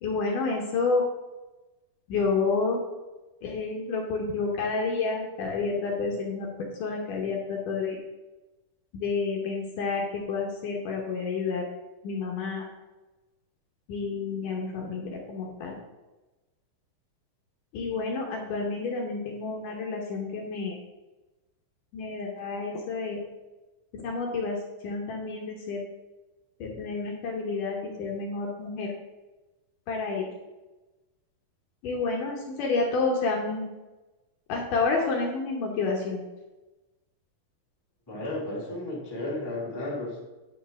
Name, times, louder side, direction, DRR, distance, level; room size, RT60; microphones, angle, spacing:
voice 1, 0.0-1.0 2.1-2.8 3.4-8.0 8.9-11.7 12.0-12.7 13.9-15.8 17.7-20.8 21.9-23.2 23.9-24.6 24.8-25.8 26.6-28.9 29.9-30.3 31.8-33.7 34.5-36.2, left 4 dB, 70° left, 0 dB, 2.3 m, -29 dB
voice 2, 38.1-40.2, left 2 dB, 10° left, -6 dB, 1.7 m, -33 dB
9.3 x 4.5 x 5.9 m, 1.1 s
omnidirectional pair, 4.3 m